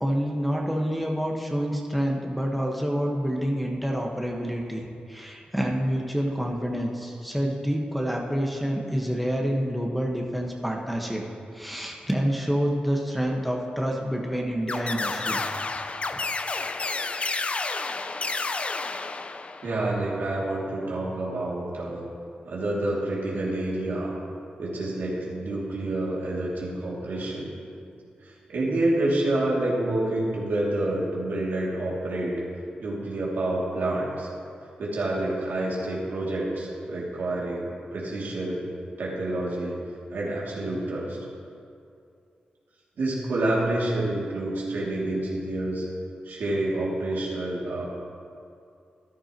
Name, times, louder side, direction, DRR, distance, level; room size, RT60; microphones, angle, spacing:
voice 1, 0.0-4.8 5.1-11.2 11.5-15.4, equal, ahead, -1 dB, 1.4 m, -27 dB
sound 1, 14.7-19.8, left 3 dB, 40° left, 0.5 m, -30 dB
voice 2, 19.6-22.1 22.5-24.1 24.6-27.5 28.2-32.4 32.8-34.3 34.8-38.6 39.0-39.7 40.1-41.2 43.0-45.8 46.2-47.9, right 1 dB, 80° right, -5 dB, 2.6 m, -28 dB
14.0 x 11.0 x 3.1 m, 2.5 s
cardioid pair, 55°, 3 cm